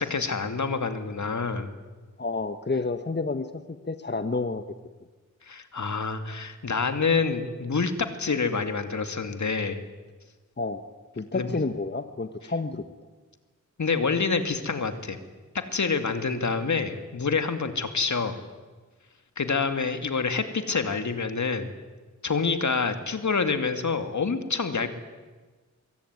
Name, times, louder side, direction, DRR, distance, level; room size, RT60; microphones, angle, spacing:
voice 1, 0.0-1.7 5.4-9.8 11.3-11.6 13.8-15.2 15.7-18.4 19.4-21.7 22.2-24.9, left 4 dB, 70° left, 8 dB, 2.4 m, -27 dB
voice 2, 2.2-4.6 10.6-10.8 11.2-12.8, left 3 dB, 35° left, 9 dB, 1.3 m, -30 dB
24.5 x 23.0 x 9.6 m, 1.3 s
wide cardioid pair, 65°, 30 cm